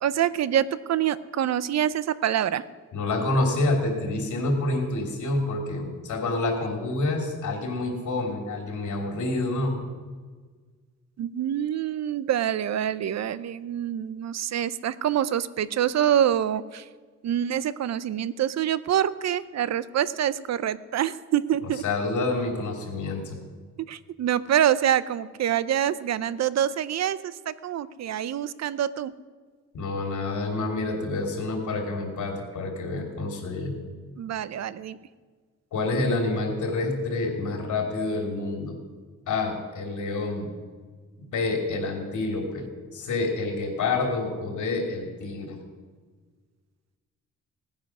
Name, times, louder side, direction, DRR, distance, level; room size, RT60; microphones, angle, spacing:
voice 1, 0.0-2.6 11.2-16.8 17.2-21.8 23.9-29.1 34.2-35.0, right 10 dB, 65° right, 16 dB, 0.6 m, -26 dB
voice 2, 2.9-9.8 21.8-23.4 29.7-33.7 35.7-38.7 39.3-40.5 41.3-42.6 42.9-45.6, left 2 dB, 80° left, 2 dB, 3.0 m, -28 dB
18.0 x 9.5 x 6.1 m, 1.5 s
wide cardioid pair, 140°, 29 cm